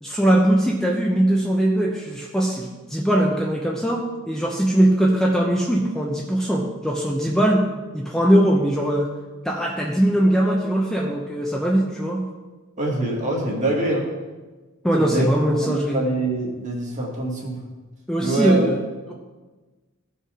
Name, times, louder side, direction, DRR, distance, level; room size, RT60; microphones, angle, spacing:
voice 1, 0.0-7.7 7.9-9.1 9.4-12.2 14.8-16.0 18.1-18.8, right 1 dB, ahead, -2 dB, 0.8 m, -20 dB
voice 2, 12.8-14.1 15.0-15.3 15.6-17.6 18.2-18.7, right 2 dB, 35° right, -1 dB, 2.0 m, -24 dB
16.0 x 5.5 x 3.7 m, 1.3 s
head